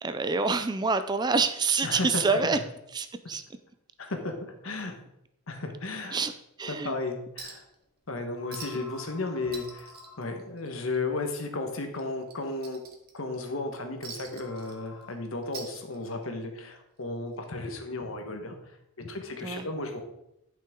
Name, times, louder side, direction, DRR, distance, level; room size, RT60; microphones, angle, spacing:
voice 1, 0.0-2.6 2.9-3.4 6.1-6.3 6.6-7.0 19.4-19.7, right 4 dB, 20° right, 10 dB, 0.4 m, -27 dB
voice 2, 1.8-2.4 4.0-4.3 4.6-5.0 5.5-6.2 6.7-7.6 8.1-9.9 10.2-12.8 13.1-20.0, left 2 dB, 70° left, 5 dB, 1.2 m, -34 dB
sound 1, 6.6-6.7 8.3-10.7 12.6-12.7 14.3-15.1, left 4 dB, 45° left, 2.5 m, -50 dB
Chink clink, 7.4-7.7 8.0-8.1 8.5-9.0 9.3-11.0 11.3-11.5 11.9-13.4 14.0-15.1 15.4-16.3 17.4-17.5, right 5 dB, 45° right, 1.3 m, -45 dB
10.5 x 5.8 x 3.7 m, 0.82 s
head